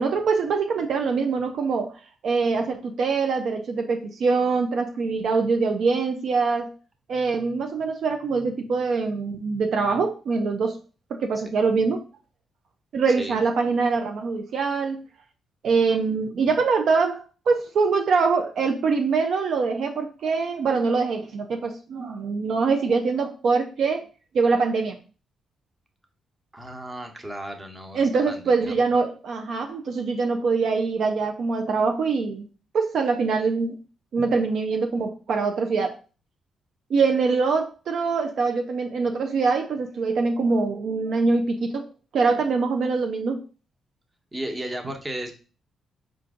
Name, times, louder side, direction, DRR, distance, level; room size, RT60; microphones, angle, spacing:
voice 1, 0.0-6.7 7.1-10.8 11.1-12.0 12.9-15.0 15.6-24.1 24.3-25.0 27.9-32.5 32.7-33.8 34.1-36.0 36.9-41.8 42.1-43.4, right 4 dB, 70° right, 4 dB, 0.5 m, -24 dB
voice 2, 26.5-28.7 44.3-45.3, right 1 dB, 25° right, 4 dB, 1.1 m, -34 dB
4.4 x 2.6 x 3.7 m, 0.35 s
supercardioid pair, 60°, 0 cm